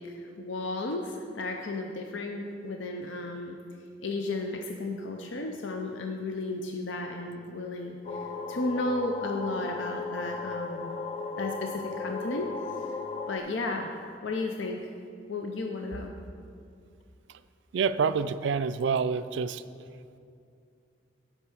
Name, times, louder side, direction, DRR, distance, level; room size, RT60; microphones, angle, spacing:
voice 1, 0.0-3.6 4.0-11.0 11.4-12.5 12.8-13.0 13.3-13.9 14.2-14.9 15.3-16.1, left 2 dB, 75° left, 3 dB, 0.6 m, -34 dB
sound 1, 8.0-13.4, left 4 dB, 35° left, 0.4 m, -36 dB
voice 2, 17.7-19.6, right 5 dB, 70° right, 13 dB, 0.4 m, -27 dB
8.9 x 5.5 x 6.3 m, 2.4 s
head